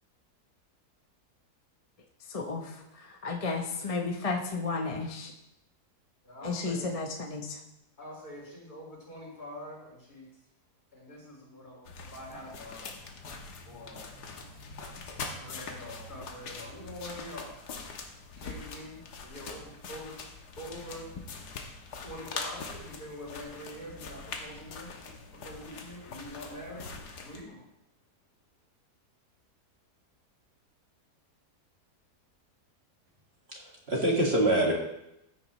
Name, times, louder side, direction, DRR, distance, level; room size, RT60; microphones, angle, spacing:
voice 1, 2.3-5.3 6.4-7.6, left 4 dB, 30° left, 2 dB, 0.7 m, -33 dB
voice 2, 6.2-6.9 8.0-10.3 10.9-12.9 13.7-17.6 18.4-20.2 20.6-21.1 22.0-24.9 25.4-27.6, left 1 dB, 65° left, -5 dB, 5.3 m, -45 dB
sound 1, 11.8-27.4, left 4 dB, 85° left, 1.7 m, -43 dB
voice 3, 33.5-34.7, right 1 dB, 40° right, -1 dB, 2.0 m, -25 dB
14.0 x 9.2 x 3.0 m, 0.84 s
omnidirectional pair, 1.7 m